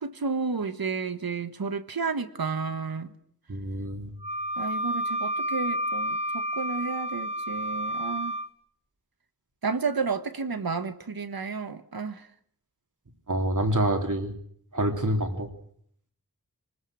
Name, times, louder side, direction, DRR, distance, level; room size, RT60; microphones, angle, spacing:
voice 1, 0.0-3.1 4.6-8.3 9.6-12.3, right 4 dB, 80° right, 10 dB, 1.5 m, -31 dB
voice 2, 3.5-4.1 13.3-14.4 14.7-15.5, right 1 dB, 55° right, 3 dB, 3.6 m, -27 dB
Wind instrument woodwind instrument, 4.2-8.5, equal, 15° right, 1.2 m, -30 dB
26.0 x 20.0 x 6.4 m, 0.65 s
wide cardioid pair, 55°, 36 cm